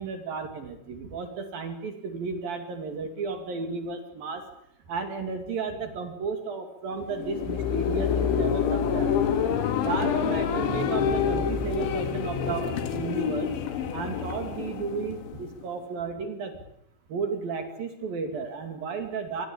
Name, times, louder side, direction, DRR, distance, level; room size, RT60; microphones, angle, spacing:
voice 1, 0.0-4.4 4.9-9.2 9.8-13.5 13.9-16.5 17.1-19.5, right 4 dB, 55° right, 6 dB, 4.1 m, -33 dB
sound 1, 7.0-15.6, left 7 dB, 80° left, 4.6 m, -27 dB
26.0 x 21.5 x 8.9 m, 0.73 s
omnidirectional pair, 5.3 m